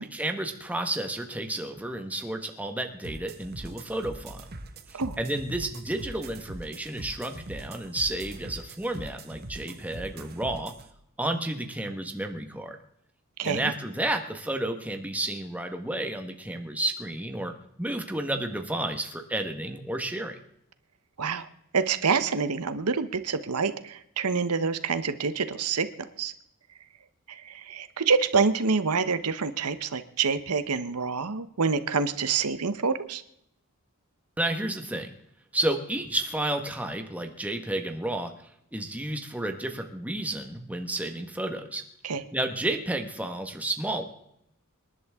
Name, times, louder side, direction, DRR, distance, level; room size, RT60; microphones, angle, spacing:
voice 1, 0.1-4.4 4.9-10.7 11.2-12.8 13.4-17.5 17.8-20.4 34.4-35.1 35.5-38.3 38.7-41.8 42.3-44.0, right 1 dB, 5° right, 5 dB, 1.4 m, -31 dB
sound 1, 3.0-10.8, right 1 dB, 45° right, 1.3 m, -42 dB
voice 2, 13.4-13.7 21.2-21.5 21.7-25.9 26.2-26.3 27.3-33.2 42.0-42.2, right 5 dB, 90° right, 11 dB, 1.0 m, -27 dB
26.5 x 11.0 x 3.6 m, 0.76 s
head